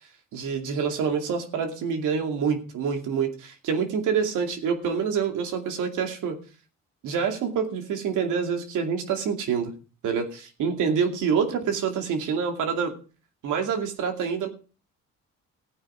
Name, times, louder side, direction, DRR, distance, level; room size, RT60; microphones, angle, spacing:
voice 1, 0.3-6.4 7.0-9.7 10.0-12.9 13.4-14.5, right 6 dB, 85° right, 5 dB, 2.6 m, -26 dB
15.0 x 9.5 x 4.9 m, 0.38 s
cardioid pair, 90°, 30 cm